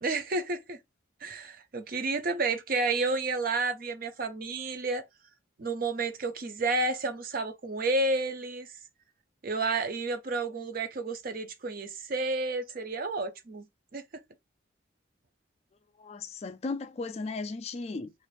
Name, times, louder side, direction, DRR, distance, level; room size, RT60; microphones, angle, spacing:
voice 1, 0.0-0.8 1.2-5.0 5.6-8.7 9.4-13.7 13.9-14.0, right 3 dB, 45° right, 0.5 m, -31 dB
voice 2, 16.0-18.1, left 3 dB, 30° left, 0.3 m, -36 dB
2.5 x 2.5 x 3.0 m
head